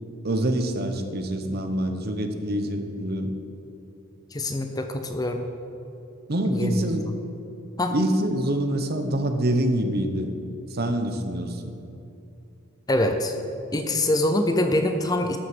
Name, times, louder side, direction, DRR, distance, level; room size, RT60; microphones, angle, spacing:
voice 1, 0.2-3.3 6.3-7.1 7.9-10.3 10.7-11.7, right 1 dB, 50° right, 6 dB, 0.8 m, -25 dB
voice 2, 4.3-5.4 6.5-6.8 7.8-7.9 12.9-13.3 13.7-15.4, left 1 dB, 20° left, 6 dB, 0.6 m, -24 dB
12.5 x 6.0 x 6.1 m, 2.8 s
head